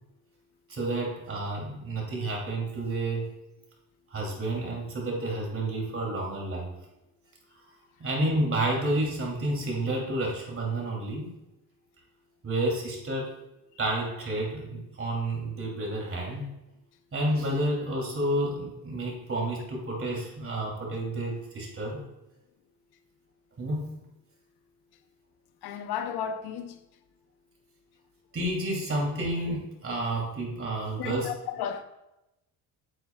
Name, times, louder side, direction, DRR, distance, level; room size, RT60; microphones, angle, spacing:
voice 1, 0.7-3.3 4.1-6.7 8.0-11.3 12.4-13.3 13.8-16.5 17.1-22.1 23.6-24.0 28.3-31.3, right 1 dB, 35° right, 3.0 m, -30 dB
voice 2, 25.6-26.8 31.0-31.8, left 8 dB, 75° left, 0.8 m, -33 dB
8.6 x 7.8 x 2.4 m
cardioid pair, 95°, 39 cm